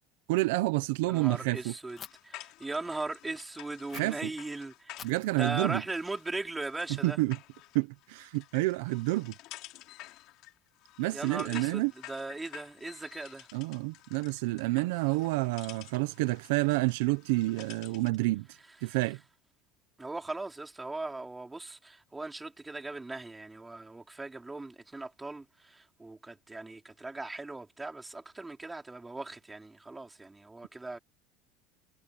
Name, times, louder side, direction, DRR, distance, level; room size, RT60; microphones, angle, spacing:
voice 1, 0.3-1.7 3.9-4.3 5.0-5.8 6.9-7.4 7.7-9.3 11.0-11.9 13.5-18.5 18.8-19.2, right 22 dB, 80° right, 0.9 m, -29 dB
voice 2, 1.1-2.0 2.2-5.0 5.4-7.2 11.1-13.5 18.9-19.0 20.0-31.0, right 2 dB, 10° right, 4.8 m, -39 dB
sound 1, 1.8-18.2, left 18 dB, 60° left, 5.7 m, -51 dB
Fire, 2.0-2.1 3.9-4.0 5.0-6.9, left 8 dB, 35° left, 2.7 m, -50 dB
supercardioid pair, 110°, 0 cm